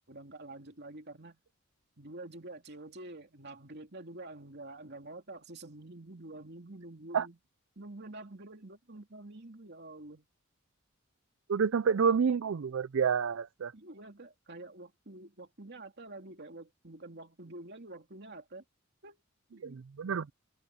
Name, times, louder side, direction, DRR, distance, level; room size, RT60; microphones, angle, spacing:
voice 1, 0.1-1.4 2.0-7.4 7.8-10.3 13.7-18.6 19.0-19.2 19.5-19.8, right 2 dB, 55° right, 2.8 m, -47 dB
voice 2, 11.5-13.7 19.6-20.3, right 6 dB, 70° right, 0.4 m, -29 dB
head